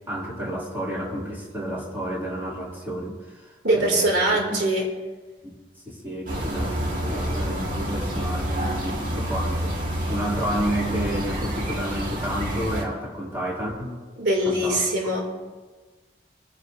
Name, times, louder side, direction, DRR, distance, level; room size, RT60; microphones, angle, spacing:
voice 1, 0.1-4.6 5.4-5.5 5.9-9.7 10.1-14.0 14.4-14.8, right 1 dB, 10° right, -6 dB, 4.2 m, -31 dB
voice 2, 3.6-4.9 14.2-15.4, right 1 dB, 75° right, -1 dB, 4.0 m, -22 dB
sound 1, 6.3-12.8, equal, 50° right, 2.7 m, -28 dB
24.5 x 10.5 x 3.2 m, 1.3 s
head